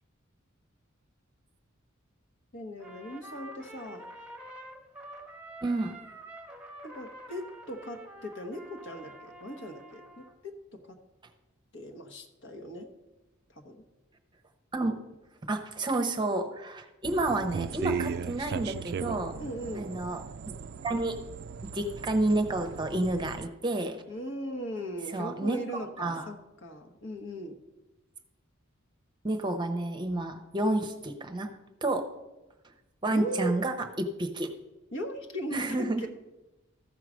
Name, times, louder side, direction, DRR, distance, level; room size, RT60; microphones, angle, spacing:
voice 1, 2.5-4.0 6.8-11.0 11.7-12.9 13.5-13.8 19.4-19.9 24.1-27.6 33.1-33.6 34.9-36.1, equal, 60° left, 4 dB, 1.2 m, -38 dB
Trumpet, 2.8-10.4, right 1 dB, 5° right, 1.1 m, -47 dB
voice 2, 5.6-5.9 14.7-15.0 15.5-19.3 19.7-20.2 20.8-21.2 21.7-24.0 25.1-25.6 26.0-26.2 29.2-31.5 31.8-32.0 33.0-34.5 35.5-36.0, right 2 dB, 20° right, 7 dB, 0.7 m, -30 dB
sound 1, 17.0-23.5, right 6 dB, 50° right, 0.3 m, -37 dB
14.0 x 4.7 x 6.2 m, 1.0 s
head